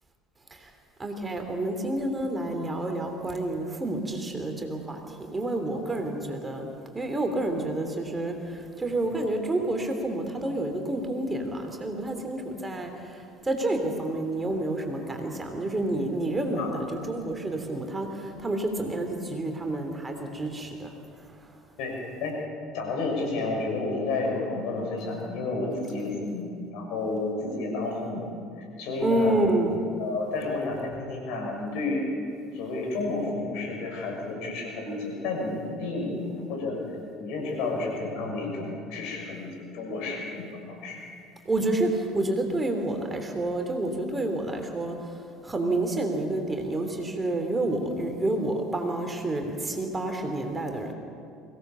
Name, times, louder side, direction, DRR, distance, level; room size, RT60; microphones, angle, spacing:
voice 1, 1.0-5.0 5.3-6.7 6.9-12.9 13.4-20.9 29.0-29.8 41.5-45.0 45.4-50.9, right 2 dB, 20° right, 4 dB, 3.0 m, -29 dB
voice 2, 21.8-22.3 22.7-28.3 28.8-29.4 30.0-32.0 32.5-36.8 37.2-41.0, left 3 dB, 60° left, 0 dB, 6.4 m, -31 dB
24.0 x 17.0 x 7.0 m, 2.4 s
figure-of-eight pair, 60°, 0 cm